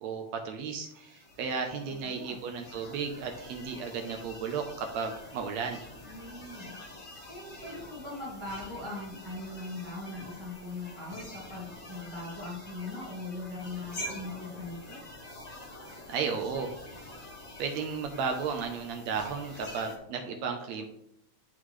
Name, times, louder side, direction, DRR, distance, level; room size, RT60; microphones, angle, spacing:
voice 1, 0.0-5.8 16.1-16.7 17.6-20.9, right 5 dB, 75° right, 4 dB, 1.9 m, -34 dB
sound 1, 0.8-20.0, left 1 dB, 55° left, 0.7 m, -46 dB
voice 2, 1.7-2.4 6.0-6.7 7.3-15.0, left 2 dB, 15° right, -8 dB, 1.1 m, -40 dB
11.5 x 3.9 x 3.1 m, 0.78 s
omnidirectional pair, 3.3 m